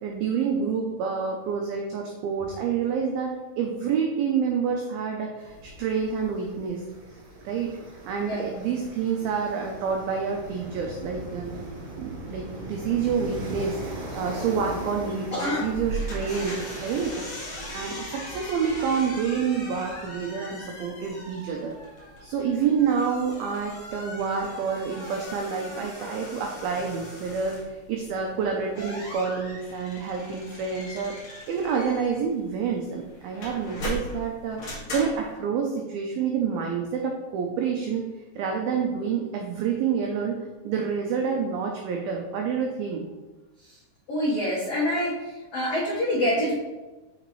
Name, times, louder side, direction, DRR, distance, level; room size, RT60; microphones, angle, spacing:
voice 1, 0.0-6.8 7.4-7.7 8.1-11.7 12.0-21.8 22.2-31.2 31.5-34.6 34.9-38.1 38.4-43.1, right 6 dB, 90° right, 1 dB, 2.1 m, -28 dB
sound 1, 5.4-20.0, right 1 dB, 50° right, 1.8 m, -40 dB
voice 2, 15.3-15.7 44.1-45.1 45.5-46.5, left 1 dB, 80° left, -8 dB, 1.4 m, -25 dB
sound 2, 15.7-35.4, equal, 45° left, 1.9 m, -39 dB
6.6 x 6.3 x 3.1 m, 1.2 s
omnidirectional pair, 5.1 m